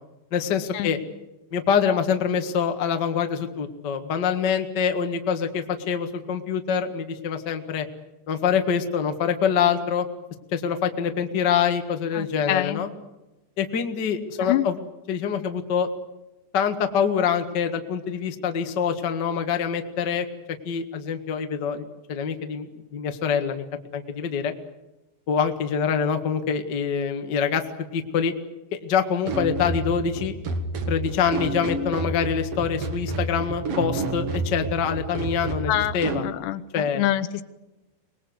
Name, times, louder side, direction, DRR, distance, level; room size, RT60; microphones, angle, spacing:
voice 1, 0.3-1.0 1.5-7.9 8.3-10.1 10.5-12.9 13.6-14.8 15.1-15.9 16.5-20.3 20.6-23.6 23.9-24.5 25.3-27.6 27.9-28.3 28.7-30.3 30.9-36.2 36.7-37.0, left 7 dB, 60° left, 6 dB, 1.1 m, -25 dB
voice 2, 12.1-12.8 14.4-14.7 35.7-37.4, left 14 dB, 85° left, 10 dB, 3.2 m, -26 dB
sound 1, 29.3-36.3, right 2 dB, 55° right, 1.7 m, -30 dB
24.5 x 20.5 x 8.0 m, 1.0 s
omnidirectional pair, 4.9 m